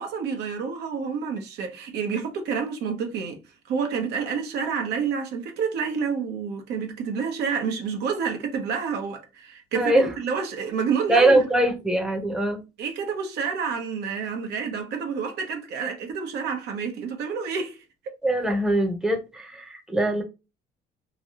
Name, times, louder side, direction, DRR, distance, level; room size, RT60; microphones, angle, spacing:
voice 1, 0.0-3.4 3.7-11.5 12.8-17.8, right 6 dB, 80° right, 0.9 m, -29 dB
voice 2, 9.7-10.1 11.1-12.6 18.2-20.2, right 1 dB, 5° right, 0.7 m, -22 dB
3.0 x 2.7 x 2.8 m
cardioid pair, 110°, 17 cm